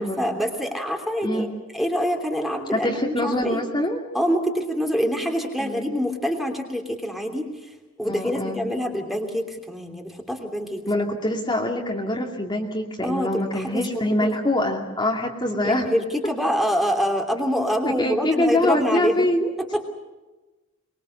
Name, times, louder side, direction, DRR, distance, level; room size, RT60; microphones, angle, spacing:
voice 1, 0.0-1.5 1.7-3.6 4.1-7.5 8.0-10.8 13.0-14.0 15.6-19.3 19.7-19.9, equal, ahead, 3 dB, 3.1 m, -25 dB
voice 2, 2.7-4.0 5.6-5.9 8.0-8.6 10.9-15.9 17.8-19.5, left 1 dB, 20° left, 0 dB, 2.5 m, -24 dB
24.0 x 23.0 x 6.6 m, 1.1 s
head